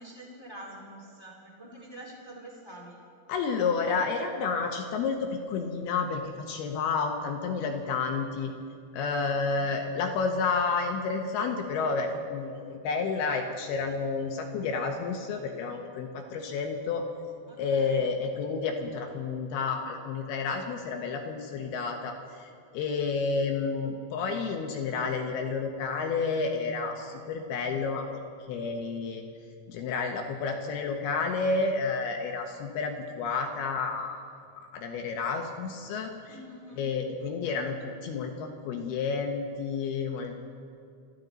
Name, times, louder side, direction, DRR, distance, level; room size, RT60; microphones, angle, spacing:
voice 1, 0.0-2.9 9.2-9.8 17.5-18.0 36.3-36.8, right 1 dB, 15° left, -2 dB, 0.9 m, -46 dB
voice 2, 3.3-8.5 8.9-17.0 17.6-28.2 28.5-29.2 29.7-34.2 34.6-36.4 36.8-40.4, left 4 dB, 75° left, 3 dB, 2.5 m, -30 dB
25.0 x 14.0 x 4.0 m, 2.3 s
omnidirectional pair, 5.3 m